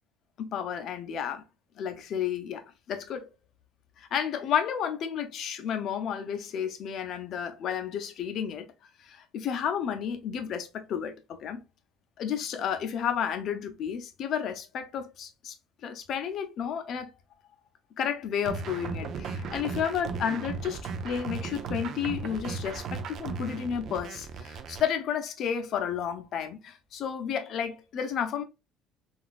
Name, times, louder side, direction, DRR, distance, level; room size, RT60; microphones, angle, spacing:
voice 1, 0.4-1.4 1.8-3.3 4.0-8.7 9.0-11.6 12.2-15.5 15.8-17.1 18.0-28.4, left 8 dB, 50° left, 0.6 m, -32 dB
sound 1, 18.4-24.8, right 5 dB, 50° right, 0.4 m, -36 dB
3.8 x 2.4 x 2.4 m
cardioid pair, 140°, 0 cm